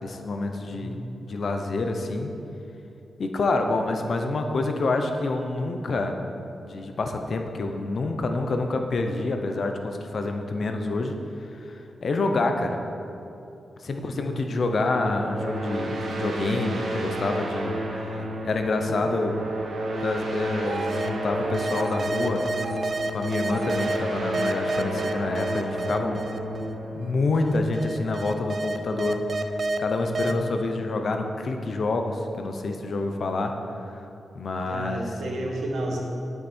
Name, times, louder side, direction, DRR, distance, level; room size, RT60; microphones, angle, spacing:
voice 1, 0.0-1.0 1.2-2.3 3.2-6.2 6.6-11.1 11.7-12.8 13.8-19.4 20.0-22.4 23.1-26.2 26.9-29.2 29.8-33.5 34.3-35.1, left 3 dB, 45° left, 5 dB, 0.8 m, -27 dB
voice 2, 13.9-14.2 30.3-30.4 34.6-36.0, right 1 dB, 85° right, -1 dB, 1.7 m, -32 dB
sound 1, 14.8-28.1, right 1 dB, 65° right, 1.4 m, -32 dB
sound 2, 20.6-21.1 21.5-24.0 24.3-26.7 27.4-29.8 30.1-30.3, right 2 dB, 35° right, 0.4 m, -29 dB
9.7 x 8.3 x 4.4 m, 2.7 s
wide cardioid pair, 175°, 0 cm